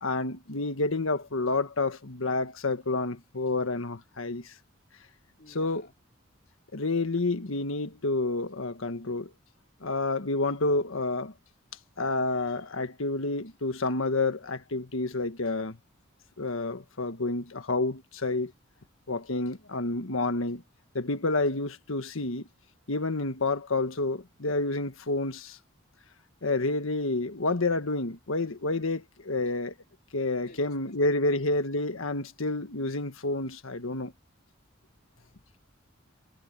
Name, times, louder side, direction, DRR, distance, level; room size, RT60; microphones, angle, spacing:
voice 1, 0.0-4.5 5.5-5.9 6.7-9.3 9.8-11.3 12.0-15.8 16.4-18.5 19.1-20.6 20.9-22.5 22.9-25.6 26.4-29.7 30.1-34.1, left 2 dB, 85° left, 1.5 m, -29 dB
voice 2, 5.4-5.9 30.4-31.0 31.2-31.5 35.1-35.8, left 2 dB, 50° left, 3.8 m, -56 dB
head